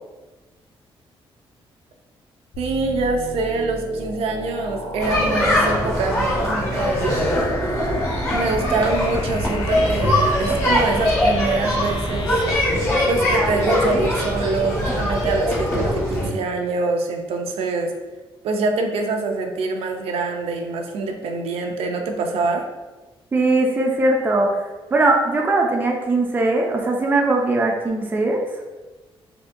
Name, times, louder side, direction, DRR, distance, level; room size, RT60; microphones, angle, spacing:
sound 1, 2.5-12.5, left 2 dB, 50° left, 0.5 m, -34 dB
voice 1, 2.6-7.3 8.3-12.4 13.1-17.9 18.4-22.6, right 3 dB, 80° right, 3 dB, 0.4 m, -25 dB
sound 2, 5.0-16.3, left 1 dB, 25° left, 1.0 m, -21 dB
voice 2, 23.3-24.5 24.9-28.4, right 2 dB, 20° right, 0 dB, 0.4 m, -20 dB
3.6 x 2.7 x 2.5 m, 1.2 s
cardioid pair, 175°, 10 cm